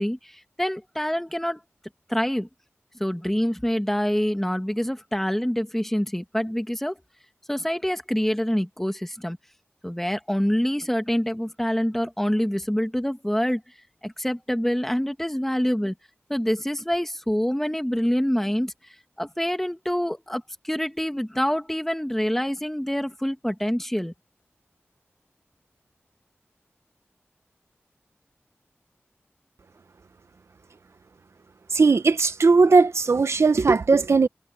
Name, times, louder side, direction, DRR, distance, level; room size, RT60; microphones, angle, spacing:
voice 1, 0.0-1.6 2.1-2.5 3.0-6.9 7.5-9.4 9.8-13.6 14.0-15.9 16.3-18.7 19.2-24.1, equal, 5° left, 2.0 m, -26 dB
voice 2, 31.7-34.3, right 4 dB, 80° right, 1.0 m, -18 dB
wide cardioid pair, 55°, 5 cm